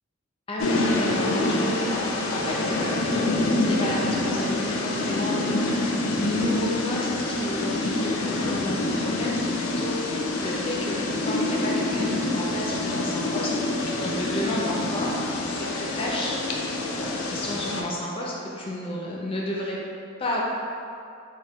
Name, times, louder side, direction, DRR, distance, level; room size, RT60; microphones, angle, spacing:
voice 1, 0.5-2.0 2.3-3.2 3.6-5.8 6.2-10.0 10.4-13.5 14.0-15.3 15.5-16.4 17.0-19.8 20.2-20.4, left 1 dB, 25° left, -3 dB, 0.5 m, -31 dB
sound 1, 0.6-17.8, left 2 dB, 85° left, 0.4 m, -26 dB
4.1 x 2.2 x 4.1 m, 2.5 s
head